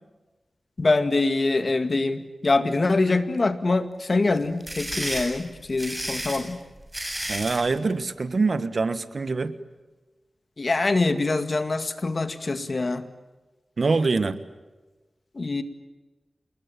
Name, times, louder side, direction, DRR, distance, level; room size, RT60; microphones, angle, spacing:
voice 1, 0.8-6.6 10.6-13.1 15.3-15.6, left 3 dB, 50° left, 10 dB, 2.1 m, -24 dB
sound 1, 4.4-7.7, right 1 dB, 10° right, 7.9 m, -32 dB
voice 2, 7.3-9.5 13.8-14.4, right 4 dB, 60° right, 13 dB, 1.5 m, -24 dB
27.5 x 21.0 x 9.2 m, 1.2 s
wide cardioid pair, 70°, 0 cm